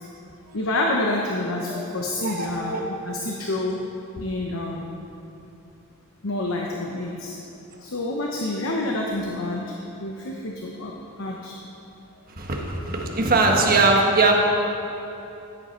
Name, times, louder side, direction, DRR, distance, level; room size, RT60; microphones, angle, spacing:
voice 1, 0.5-2.8 3.0-3.8 4.2-4.9 6.2-7.3 7.8-9.6 10.0-10.9 11.2-11.5, left 2 dB, 65° left, -1 dB, 1.0 m, -28 dB
voice 2, 2.2-2.8 12.4-14.3, right 3 dB, 40° right, 0 dB, 1.3 m, -21 dB
14.5 x 8.0 x 4.4 m, 2.9 s
head